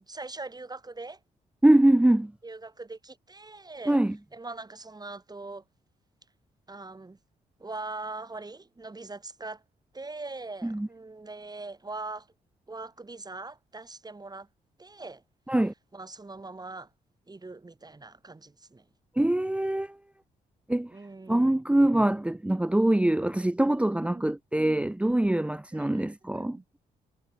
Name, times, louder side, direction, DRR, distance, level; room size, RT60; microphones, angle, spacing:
voice 1, 0.1-1.2 2.4-4.0 4.3-5.6 6.7-7.2 7.6-9.6 9.9-12.3 12.7-14.5 14.8-15.2 15.9-16.9 17.3-18.9 20.9-21.6 24.0-24.9 25.7-26.1 26.3-26.6, right 3 dB, 25° right, 4.1 m, -41 dB
voice 2, 1.6-2.3 3.9-4.2 10.6-10.9 15.5-15.7 19.2-20.0 20.7-20.9 21.3-26.6, right 1 dB, 5° right, 0.6 m, -23 dB
cardioid pair, 70°, 17 cm